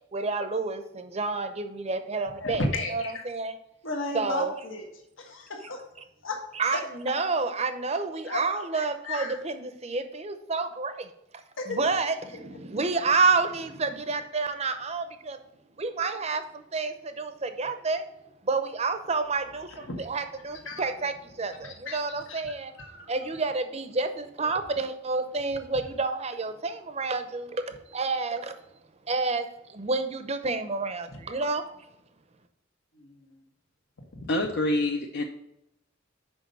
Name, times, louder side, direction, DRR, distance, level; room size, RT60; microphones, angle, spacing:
voice 1, 0.1-2.6 2.9-3.6 4.1-4.5 6.5-11.1 11.7-15.4 15.8-18.1 18.4-22.7 23.1-28.5 29.1-31.6, right 3 dB, 30° right, 9 dB, 0.7 m, -29 dB
voice 2, 2.4-3.2 3.8-4.9 5.2-5.8 6.2-6.4 8.3-9.4 11.6-11.8 19.9-20.0 20.6-20.8 21.6-22.0 22.3-22.4 22.8-23.1 31.3-31.4 32.9-33.2, left 2 dB, 75° left, 2 dB, 1.4 m, -34 dB
voice 3, 34.3-35.2, left 1 dB, 55° left, 2 dB, 0.6 m, -26 dB
6.3 x 5.1 x 5.3 m, 0.85 s
head